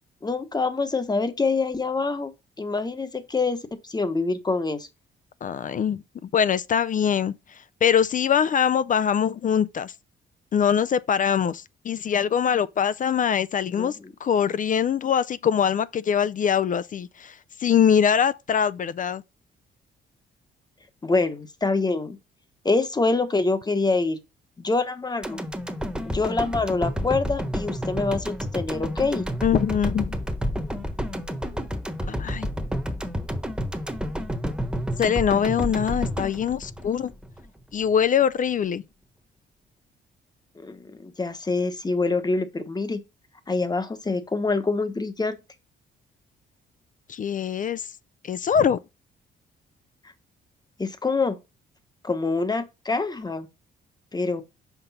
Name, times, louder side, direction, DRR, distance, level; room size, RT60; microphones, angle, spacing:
voice 1, 0.2-2.3 2.6-3.6 3.8-4.9 13.8-13.9 21.0-22.2 22.6-24.2 24.6-25.4 26.0-29.3 40.6-43.0 43.5-45.4 50.8-51.4 52.0-53.5 54.1-54.4, left 3 dB, 20° left, 1.1 m, -25 dB
voice 2, 5.4-9.9 10.5-19.2 29.4-30.2 32.1-32.5 35.0-37.1 37.7-38.8 47.1-47.9 48.2-48.8, left 8 dB, 40° left, 0.4 m, -23 dB
sound 1, 25.2-37.5 37.8-37.9, equal, 5° right, 1.1 m, -30 dB
6.0 x 5.2 x 4.2 m
cardioid pair, 90°, 20 cm